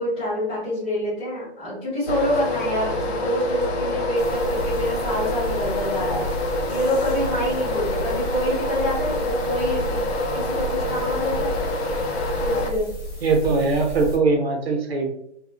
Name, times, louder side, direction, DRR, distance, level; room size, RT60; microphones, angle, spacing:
voice 1, 0.0-6.2 6.7-10.0 10.3-11.5 12.4-12.9, left 1 dB, 10° left, -12 dB, 0.6 m, -26 dB
sound 1, 2.1-12.7, left 1 dB, 65° left, 0.6 m, -26 dB
sound 2, 4.2-14.2, right 2 dB, 30° left, 0.9 m, -35 dB
voice 2, 13.2-15.1, right 3 dB, 60° right, 2 dB, 0.8 m, -21 dB
2.5 x 2.3 x 2.4 m, 0.73 s
figure-of-eight pair, 155°, 35 cm